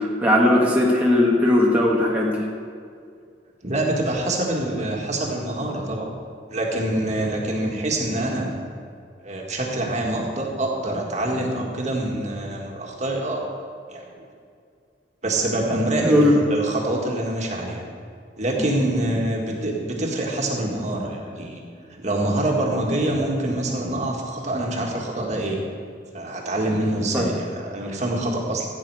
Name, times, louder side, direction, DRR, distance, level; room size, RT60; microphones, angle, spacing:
voice 1, 0.0-2.5 16.0-16.4 27.1-27.3, left 1 dB, 10° right, -4 dB, 1.3 m, -18 dB
voice 2, 3.6-6.1 6.5-8.5 9.2-13.4 13.9-14.2 15.2-17.8 18.4-21.6 21.9-25.6 26.1-28.7, right 1 dB, 40° right, -1 dB, 1.9 m, -25 dB
15.5 x 8.9 x 4.8 m, 2.3 s
head